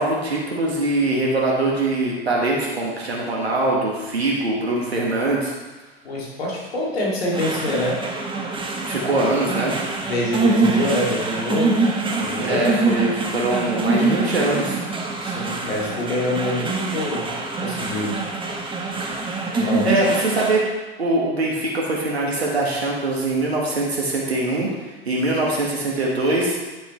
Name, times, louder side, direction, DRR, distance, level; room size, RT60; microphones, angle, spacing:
voice 1, 0.0-5.5 8.8-9.8 12.4-14.8 19.8-20.6 21.0-26.6, right 2 dB, 90° right, -3 dB, 1.5 m, -22 dB
voice 2, 6.0-8.0 10.1-11.8 12.2-12.7 15.2-17.3 17.6-18.2 19.6-20.1, left 1 dB, 80° left, -4 dB, 2.5 m, -25 dB
sound 1, 7.3-20.6, right 3 dB, 15° right, 1.2 m, -24 dB
9.4 x 7.0 x 3.2 m, 1.2 s
hypercardioid pair, 85°, 31 cm